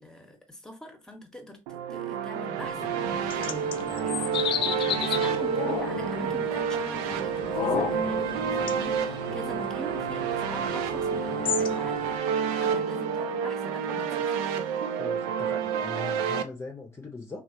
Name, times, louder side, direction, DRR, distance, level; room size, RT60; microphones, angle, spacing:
voice 1, 0.0-14.4, left 1 dB, 5° left, 1.1 m, -43 dB
sound 1, 1.7-16.4, right 7 dB, 80° right, 0.4 m, -29 dB
sound 2, 2.6-12.2, left 9 dB, 55° left, 0.4 m, -34 dB
voice 2, 15.0-17.4, left 3 dB, 25° left, 0.7 m, -40 dB
3.1 x 2.3 x 2.6 m
hypercardioid pair, 65°, 10 cm